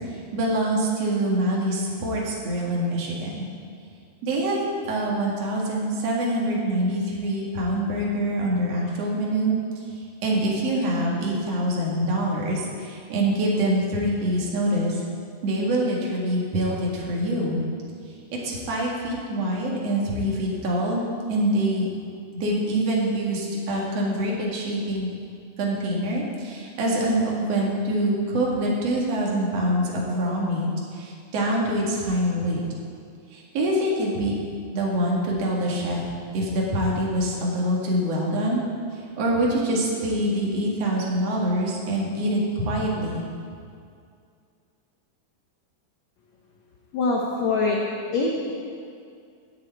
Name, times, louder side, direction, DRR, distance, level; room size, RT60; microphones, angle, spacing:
voice 1, 0.1-3.4 4.2-9.6 10.2-15.0 15.4-17.6 18.3-21.0 21.3-21.9 22.3-25.1 25.6-32.6 33.3-34.3 34.7-36.0 36.3-38.6 38.9-43.2, right 1 dB, 50° right, -3 dB, 2.6 m, -25 dB
voice 2, 46.9-47.8 48.1-48.5, left 3 dB, 70° left, -1 dB, 1.8 m, -23 dB
17.5 x 6.9 x 4.6 m, 2.3 s
omnidirectional pair, 3.9 m